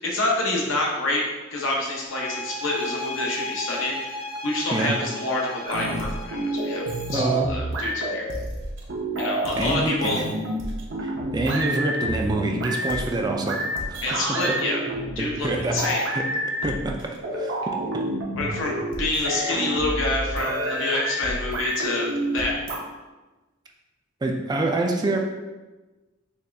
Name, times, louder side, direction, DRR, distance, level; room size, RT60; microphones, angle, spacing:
voice 1, 0.0-1.2 1.5-6.8 7.1-8.3 9.2-10.2 14.0-14.8 15.2-16.0 18.4-22.6, left 2 dB, 75° left, -2 dB, 0.8 m, -27 dB
sound 1, 2.1-7.4, left 2 dB, 30° left, 0.6 m, -35 dB
sound 2, 5.7-22.8, right 1 dB, 70° right, 0.7 m, -29 dB
voice 2, 7.1-7.5 9.6-10.2 11.0-13.6 13.9-14.0 14.3-14.6 15.2-16.2 16.6-17.0 17.3-18.1 24.2-25.2, right 2 dB, 20° right, 2 dB, 0.3 m, -26 dB
4.2 x 2.4 x 3.3 m, 1.2 s
head